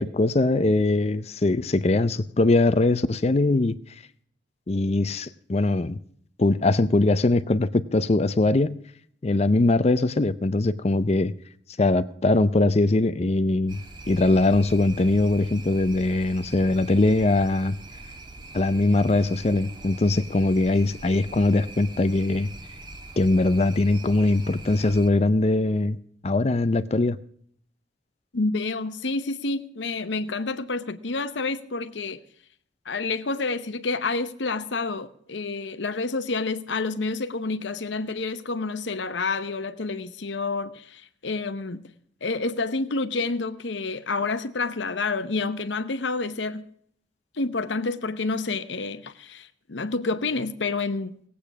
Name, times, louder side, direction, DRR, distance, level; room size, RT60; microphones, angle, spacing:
voice 1, 0.0-3.8 4.7-6.0 6.4-8.7 9.2-11.3 11.8-13.8 14.1-17.8 18.5-22.5 23.2-26.0 26.2-27.2, left 2 dB, 35° left, 0.5 m, -21 dB
sound 1, 13.7-25.1, right 2 dB, 25° right, 1.4 m, -42 dB
voice 2, 28.3-32.2 32.9-41.8 42.2-46.7 47.4-51.1, left 3 dB, 80° left, 0.9 m, -29 dB
18.0 x 8.5 x 6.0 m
head